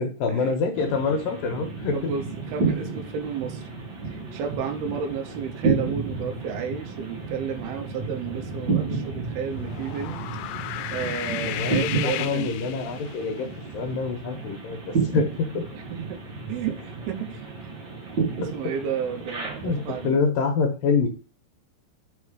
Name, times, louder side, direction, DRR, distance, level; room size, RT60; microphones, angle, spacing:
voice 1, 0.0-2.1 11.5-13.5 13.7-15.7 18.6-18.7 19.6-21.1, left 4 dB, 70° left, 4 dB, 2.6 m, -26 dB
sound 1, 0.7-20.1, right 4 dB, 40° right, 1.7 m, -31 dB
voice 2, 1.9-3.8 4.1-10.3 10.9-12.6 15.7-16.2 16.5-17.5 18.4-20.3, right 7 dB, 80° right, 7 dB, 2.7 m, -32 dB
sound 2, 9.6-13.3, left 14 dB, 90° left, 2.6 m, -34 dB
6.2 x 4.8 x 4.9 m, 0.35 s
omnidirectional pair, 4.6 m